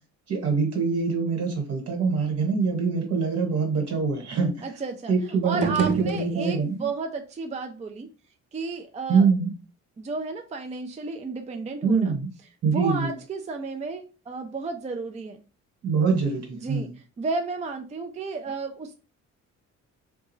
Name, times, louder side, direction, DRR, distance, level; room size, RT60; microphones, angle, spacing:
voice 1, 0.3-4.6 5.1-6.9 9.1-9.5 11.8-12.3 12.6-13.1 15.8-16.9, right 5 dB, 55° right, 2 dB, 1.4 m, -24 dB
voice 2, 4.6-8.1 8.5-9.3 10.0-12.2 12.6-15.4 16.6-19.0, right 4 dB, 25° right, 4 dB, 0.4 m, -33 dB
sound 1, 5.4-6.9, right 8 dB, 90° right, 0.5 m, -31 dB
3.6 x 2.3 x 3.1 m, 0.33 s
cardioid pair, 90°, 30 cm